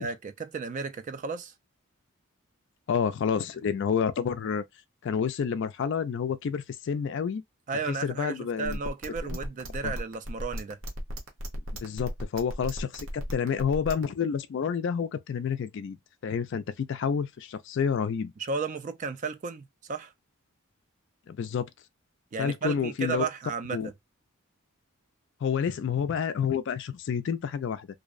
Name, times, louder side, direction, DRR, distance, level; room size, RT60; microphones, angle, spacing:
voice 1, 0.0-1.5 7.7-10.8 18.4-20.1 22.3-23.9, right 5 dB, 35° right, 0.3 m, -34 dB
voice 2, 2.9-4.6 5.0-7.4 7.9-8.8 9.8-9.9 11.8-16.0 16.2-18.3 21.3-21.7 22.4-23.2 23.7-23.9 25.4-27.9, left 7 dB, 55° left, 0.3 m, -29 dB
sound 1, 8.7-14.0, equal, 60° right, 0.7 m, -35 dB
2.6 x 2.0 x 2.4 m
head